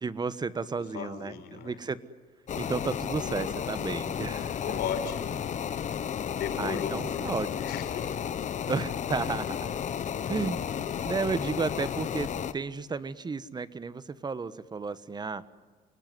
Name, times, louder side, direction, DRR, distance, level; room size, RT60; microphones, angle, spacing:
voice 1, 0.0-2.0 2.6-4.8 6.6-7.5 8.7-9.8 10.3-10.6 11.0-15.4, right 4 dB, 25° right, 15 dB, 1.3 m, -33 dB
voice 2, 0.8-1.8 4.6-5.4 6.3-8.3, left 8 dB, 75° left, 7 dB, 4.6 m, -36 dB
sound 1, 2.5-12.5, left 8 dB, 45° left, 1.2 m, -33 dB
28.0 x 19.0 x 9.6 m, 1.4 s
cardioid pair, 110°, 17 cm